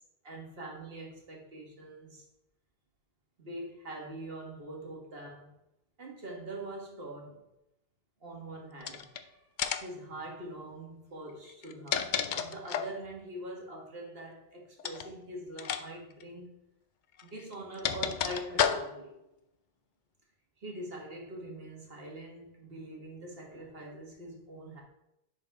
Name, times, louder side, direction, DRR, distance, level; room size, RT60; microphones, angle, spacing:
voice 1, 0.2-2.3 3.4-5.5 6.0-7.4 8.2-9.5 9.8-16.5 17.2-19.2 20.6-24.8, right 1 dB, 65° right, -1 dB, 2.0 m, -43 dB
sound 1, 8.8-9.2 9.6-10.0 11.5-13.0 14.8-15.1 15.6-15.8 16.1-16.2 17.2-19.1, left 8 dB, 60° left, 0.6 m, -32 dB
10.5 x 4.8 x 3.6 m, 0.86 s
omnidirectional pair, 1.1 m